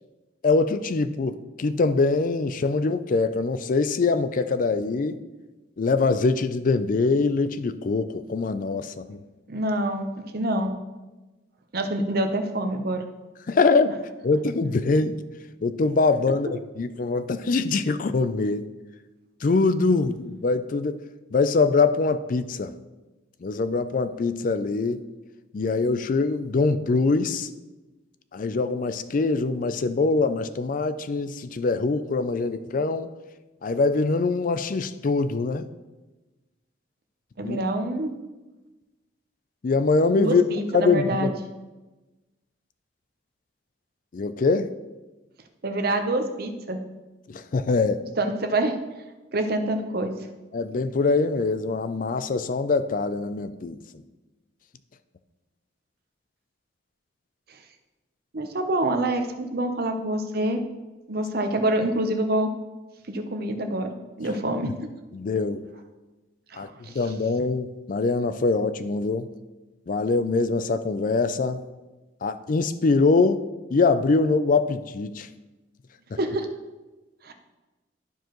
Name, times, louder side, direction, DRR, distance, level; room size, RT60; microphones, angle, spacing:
voice 1, 0.4-5.2 5.8-9.2 13.5-15.2 15.6-18.7 19.4-21.0 21.3-22.7 23.4-25.0 25.5-27.5 28.3-33.1 33.6-35.7 37.4-37.6 39.6-40.4 40.7-41.3 44.1-44.7 47.3-48.0 50.5-53.8 64.6-64.7 65.1-65.6 66.5-69.3 69.9-71.7 72.2-73.4 73.7-75.3, left 3 dB, 45° left, 12 dB, 0.4 m, -23 dB
voice 2, 9.5-10.7 11.7-13.0 37.4-38.2 40.2-41.3 45.6-46.8 48.2-48.7 49.3-50.1 57.5-57.6 58.3-60.6 61.1-62.5 63.1-64.7 66.5-66.9 76.2-76.5 77.2-77.3, right 1 dB, 50° right, 5 dB, 0.8 m, -26 dB
12.5 x 4.7 x 3.0 m, 1.1 s
head